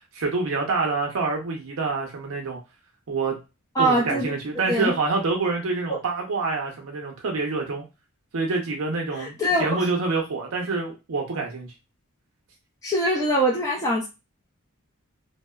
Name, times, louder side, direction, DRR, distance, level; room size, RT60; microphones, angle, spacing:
voice 1, 0.1-2.6 3.1-3.4 3.8-7.8 8.3-9.3 9.6-11.7, right 3 dB, 70° right, 1 dB, 0.6 m, -26 dB
voice 2, 3.7-4.3 4.7-4.9 5.9-6.0 9.1-9.9 12.8-14.1, right 1 dB, 15° left, -4 dB, 0.4 m, -23 dB
2.8 x 2.0 x 2.2 m, 0.26 s
head